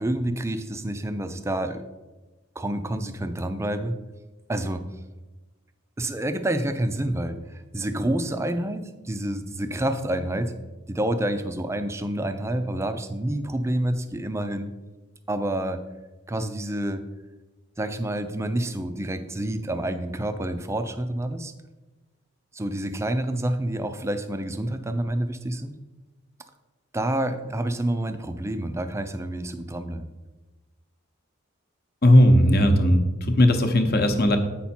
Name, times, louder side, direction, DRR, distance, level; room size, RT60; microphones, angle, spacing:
voice 1, 0.0-1.8 2.6-3.9 4.5-4.8 6.0-10.5 10.9-14.7 15.3-15.8 16.3-17.0 17.8-21.5 22.5-25.7 26.9-30.1, right 1 dB, 15° right, 9 dB, 0.4 m, -28 dB
voice 2, 32.0-34.4, left 1 dB, 50° left, 6 dB, 0.9 m, -17 dB
8.3 x 5.7 x 4.3 m, 1.2 s
head